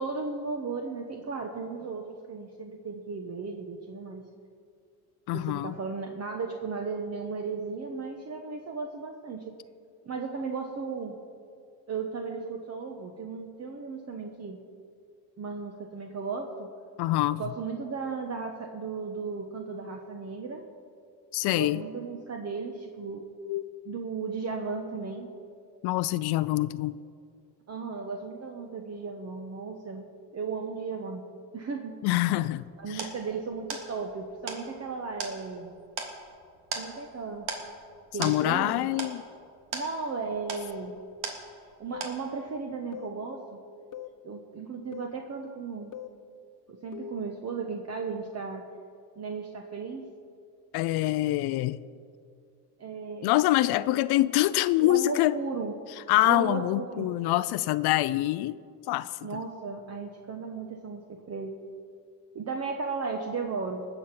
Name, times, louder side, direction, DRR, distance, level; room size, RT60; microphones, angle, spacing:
voice 1, 0.0-4.3 5.3-9.5 10.0-11.2 11.9-14.6 15.4-16.7 17.3-20.6 21.5-23.2 23.9-25.3 27.7-31.2 31.5-32.0 32.8-35.7 36.7-37.5 38.1-38.9 39.7-41.0 41.8-43.6 44.2-45.9 46.7-48.6 49.2-50.1 52.8-53.4 54.8-55.7 56.2-57.1 59.2-61.6 62.3-63.9, right 4 dB, 40° right, 3 dB, 1.2 m, -35 dB
voice 2, 5.3-5.7 17.0-17.4 21.3-21.8 23.4-23.7 25.8-27.0 32.0-33.1 38.2-39.2 50.7-51.8 53.2-55.4 56.1-58.6 58.9-59.4, left 16 dB, 75° left, 15 dB, 0.5 m, -25 dB
sound 1, 32.3-41.8 42.0-42.6, right 5 dB, 85° right, 1.9 m, -39 dB
sound 2, 41.9-42.2 42.9-43.2 43.9-44.2 44.9-45.2 45.9-46.2 46.9-47.2, left 10 dB, 55° left, 1.0 m, -41 dB
19.5 x 7.0 x 6.0 m, 2.3 s
cardioid pair, 85°, 39 cm